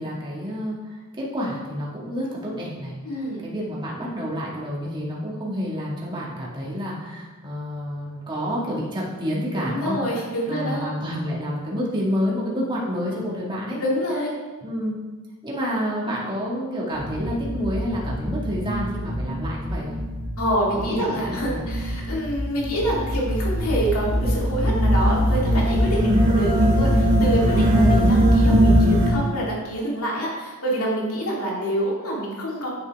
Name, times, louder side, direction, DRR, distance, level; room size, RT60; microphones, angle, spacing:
voice 1, 0.0-13.8 14.6-15.0 15.4-20.0 20.9-21.7 26.0-26.3, equal, 20° right, -5 dB, 1.9 m, -29 dB
voice 2, 3.0-3.5 9.6-10.9 13.8-14.3 20.4-26.0 26.3-32.7, right 1 dB, 85° left, -4 dB, 2.3 m, -27 dB
sound 1, 16.9-29.1, equal, 60° right, 2.6 m, -21 dB
8.7 x 8.2 x 3.5 m, 1.3 s
head